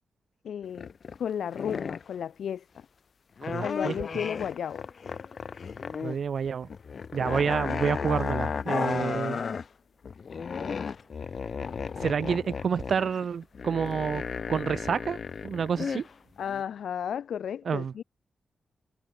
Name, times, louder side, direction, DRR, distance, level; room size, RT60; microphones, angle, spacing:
voice 1, 0.4-0.9 1.2-2.8 3.6-4.9 16.4-18.0, left 8 dB, 75° left, 3.3 m, -33 dB
sound 1, 0.6-1.2 1.5-2.1 3.4-6.2 6.4-9.6 10.0-16.1 16.5-16.6, left 6 dB, 45° left, 1.5 m, -34 dB
voice 2, 3.5-3.9 6.0-6.7 7.1-9.4 12.0-14.2 14.5-15.2 15.4-16.1 17.7-17.9, right 6 dB, 50° right, 0.6 m, -28 dB
wide cardioid pair, 160°, 0 cm